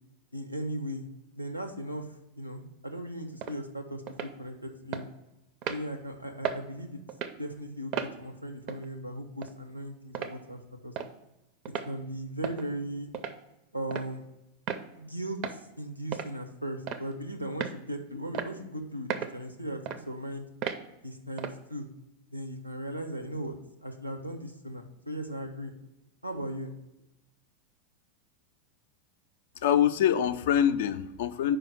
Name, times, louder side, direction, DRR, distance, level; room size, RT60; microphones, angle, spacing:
voice 1, 0.3-1.1 1.3-5.1 5.7-7.0 7.4-10.9 11.8-13.1 13.7-14.2 14.9-20.5 21.0-21.9 22.3-23.6 23.8-25.7 26.2-26.7, equal, 90° right, 7 dB, 0.8 m, -37 dB
sound 1, 3.4-3.6 4.1-4.3 4.9-5.1 5.6-5.8 6.4-6.6 7.1-7.4 7.9-8.1 8.7-8.9 9.4-9.5 10.1-10.4 11.0-11.1 11.7-11.9 12.4-12.7 13.1-13.4 13.9-14.1 14.7-14.9 15.4-15.6 16.1-16.3 16.9-17.1 17.6-17.8 18.3-18.5 19.1-19.4 19.9-20.0 20.6-20.8 21.4-21.6, right 8 dB, 40° right, 0.5 m, -34 dB
voice 2, 29.6-31.6, left 9 dB, 55° left, 11 dB, 0.4 m, -24 dB
5.1 x 4.9 x 6.1 m, 0.93 s
figure-of-eight pair, 90°, 0 cm